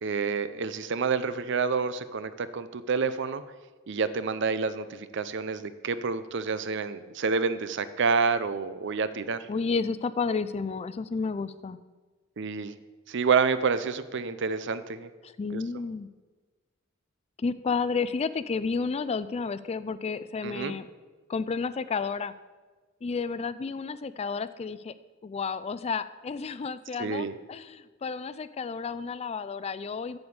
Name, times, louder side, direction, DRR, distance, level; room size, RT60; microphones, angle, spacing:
voice 1, 0.0-3.4 3.9-9.4 12.4-12.7 13.1-15.1 15.5-15.6 20.4-20.7 27.0-27.3, right 5 dB, 65° right, 13 dB, 0.6 m, -28 dB
voice 2, 9.5-11.8 15.2-16.1 17.4-20.9 21.3-22.3 23.0-24.9 25.2-30.2, left 4 dB, 30° left, 14 dB, 0.4 m, -31 dB
7.9 x 7.0 x 8.0 m, 1.4 s
head